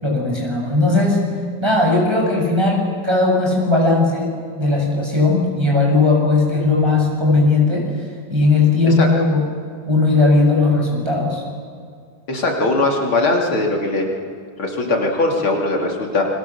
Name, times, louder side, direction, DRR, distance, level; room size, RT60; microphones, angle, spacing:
voice 1, 0.0-1.2 1.6-9.4 9.9-11.4, left 3 dB, 10° right, -1 dB, 6.5 m, -17 dB
voice 2, 12.3-14.1 14.6-16.3, left 2 dB, 75° left, 0 dB, 4.0 m, -20 dB
30.0 x 23.5 x 7.2 m, 2.2 s
omnidirectional pair, 2.3 m